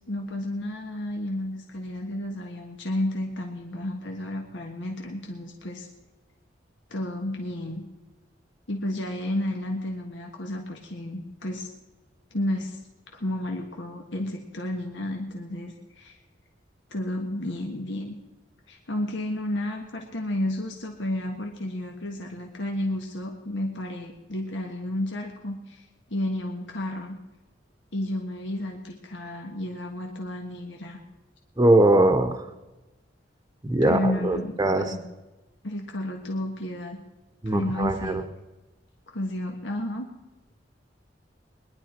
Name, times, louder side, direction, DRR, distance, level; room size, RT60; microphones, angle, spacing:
voice 1, 0.1-5.9 6.9-7.9 8.7-11.7 12.3-12.8 13.1-16.2 16.9-18.2 18.7-27.2 27.9-31.0 33.8-35.0 35.6-37.0 37.4-38.2 39.1-40.1, left 1 dB, 80° left, 1 dB, 1.6 m, -32 dB
voice 2, 31.6-32.4 33.6-34.9 37.4-38.2, right 1 dB, 20° right, 7 dB, 0.9 m, -21 dB
21.5 x 11.0 x 4.5 m, 1.1 s
head